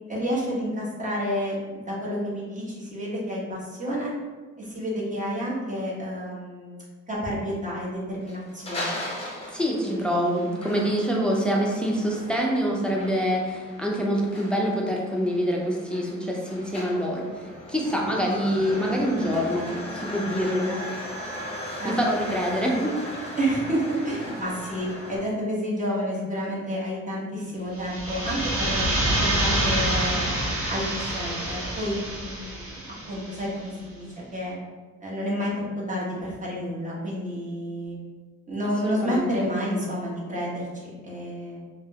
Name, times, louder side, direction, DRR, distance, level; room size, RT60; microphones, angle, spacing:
voice 1, 0.1-4.1 4.6-6.8 7.1-8.9 9.8-10.5 20.7-20.8 21.8-22.0 23.4-28.9 29.2-30.4 30.7-34.6 35.0-35.5 35.9-38.0 38.5-41.6, equal, 25° right, -5 dB, 1.0 m, -30 dB
sound 1, 8.2-25.2, left 1 dB, 20° left, 0.9 m, -37 dB
voice 2, 9.5-19.7 19.9-20.7 21.8-23.0 38.8-39.5, equal, 5° left, -2 dB, 0.5 m, -26 dB
sound 2, 27.8-33.4, right 1 dB, 50° right, 0.8 m, -27 dB
3.2 x 2.0 x 2.8 m, 1.3 s
cardioid pair, 90°, 30 cm